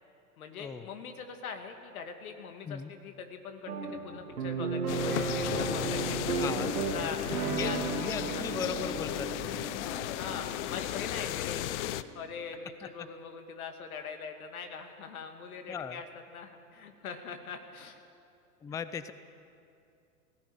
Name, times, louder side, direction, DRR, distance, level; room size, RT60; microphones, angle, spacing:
voice 1, 0.4-6.6 6.9-7.2 7.6-8.7 10.2-11.8 12.1-18.0, left 6 dB, 65° left, 5 dB, 2.4 m, -42 dB
sound 1, 3.7-12.1, right 5 dB, 70° right, 3.0 m, -35 dB
sound 2, 4.9-12.0, left 14 dB, 50° left, 0.8 m, -35 dB
voice 2, 6.4-6.7 7.5-9.7 12.8-12.9 15.7-16.0 18.6-19.1, left 6 dB, 10° left, 13 dB, 0.4 m, -38 dB
18.0 x 16.0 x 9.1 m, 2.6 s
figure-of-eight pair, 95°, 45 cm